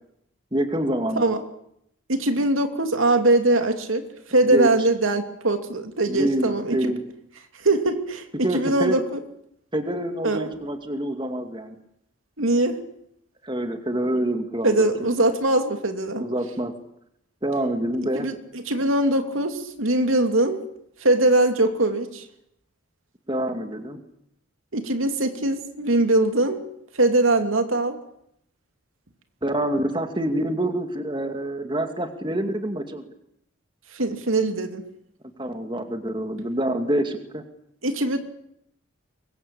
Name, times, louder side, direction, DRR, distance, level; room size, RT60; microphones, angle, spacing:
voice 1, 0.5-1.3 4.4-4.7 6.1-7.0 8.4-9.0 9.7-11.8 13.4-15.1 16.2-16.7 17.4-18.3 23.3-24.0 29.4-33.0 35.4-37.4, right 1 dB, 25° right, 6 dB, 2.3 m, -26 dB
voice 2, 2.1-6.9 7.6-9.2 10.2-10.5 12.4-12.8 14.6-16.2 18.1-20.6 21.0-22.3 24.7-26.6 26.9-28.0 33.9-34.8 37.8-38.2, right 2 dB, 85° right, 7 dB, 2.8 m, -22 dB
24.5 x 22.0 x 8.6 m, 0.74 s
head